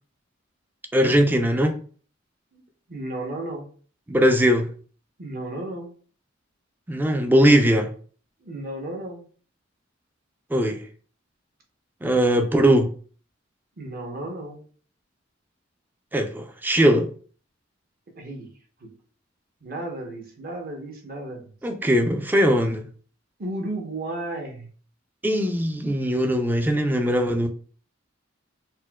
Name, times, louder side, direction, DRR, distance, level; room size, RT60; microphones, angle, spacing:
voice 1, 0.9-1.8 4.1-4.7 6.9-7.9 10.5-10.8 12.0-12.9 16.1-17.1 21.6-22.8 25.2-27.5, equal, 10° right, 0.3 m, -20 dB
voice 2, 2.9-3.7 5.2-5.9 8.4-9.3 13.8-14.6 18.1-18.5 18.8-18.9 19.6-21.4 23.4-24.7, right 1 dB, 50° right, 0.8 m, -33 dB
4.2 x 2.1 x 2.2 m
head